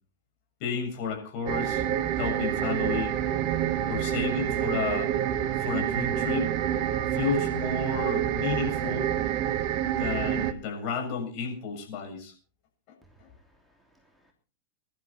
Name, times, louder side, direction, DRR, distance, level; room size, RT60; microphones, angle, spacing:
voice 1, 0.6-1.8 2.2-3.2 3.9-5.1 5.6-6.5 7.1-9.1 10.0-12.3 13.2-13.3, left 6 dB, 45° left, 2 dB, 7.0 m, -32 dB
sound 1, 1.5-10.5, right 11 dB, 40° right, 1.3 m, -28 dB
voice 2, 13.0-14.3, right 1 dB, ahead, 1 dB, 2.9 m, -63 dB
22.5 x 12.0 x 4.2 m, 0.36 s
figure-of-eight pair, 90°, 0 cm